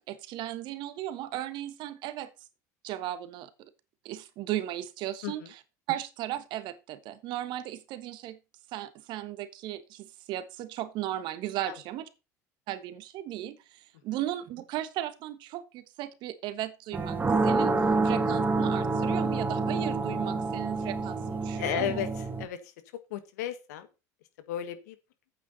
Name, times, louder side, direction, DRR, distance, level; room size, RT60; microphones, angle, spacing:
voice 1, 0.1-2.3 2.8-3.7 4.0-5.4 5.9-8.4 8.7-12.1 12.7-17.2 17.4-22.0, right 13 dB, 60° right, 13 dB, 1.3 m, -36 dB
sound 1, 16.9-22.5, right 3 dB, 20° right, 1.4 m, -27 dB
voice 2, 21.5-22.1 22.4-22.7 23.1-23.9 24.5-25.0, left 10 dB, 80° left, 11 dB, 1.5 m, -33 dB
9.1 x 8.4 x 4.1 m, 0.28 s
hypercardioid pair, 85°, 9 cm